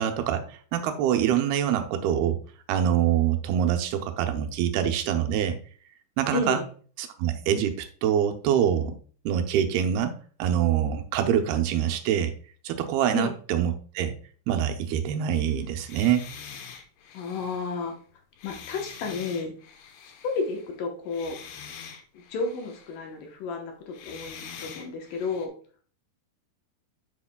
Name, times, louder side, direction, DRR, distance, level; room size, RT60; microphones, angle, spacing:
voice 1, 0.0-2.4 2.7-5.6 6.2-6.6 7.0-9.0 9.3-10.1 10.4-12.3 12.6-14.1 14.5-16.3, right 9 dB, 80° right, 6 dB, 2.7 m, -25 dB
voice 2, 6.3-6.6 13.1-13.3 17.1-17.9 18.4-19.5 20.2-21.4 22.1-25.5, left 4 dB, 70° left, 3 dB, 2.4 m, -32 dB
sound 1, 15.4-20.8 21.1-23.1 23.9-25.5, left 7 dB, 85° left, 3.0 m, -45 dB
11.0 x 5.7 x 2.2 m, 0.42 s
omnidirectional pair, 4.5 m